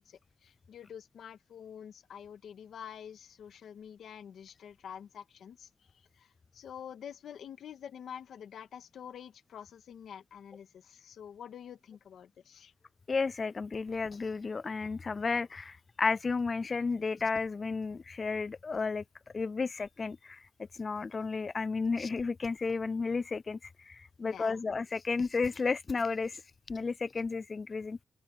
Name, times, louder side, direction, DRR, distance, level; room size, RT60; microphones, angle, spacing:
voice 1, 0.0-5.7 6.2-12.7 24.2-24.6, left 8 dB, 70° left, 2.5 m, -47 dB
voice 2, 13.1-19.0 19.3-20.4 20.8-23.6 23.9-26.4 26.7-28.0, left 4 dB, 30° left, 0.4 m, -32 dB
open air
wide cardioid pair, 145°, 0 cm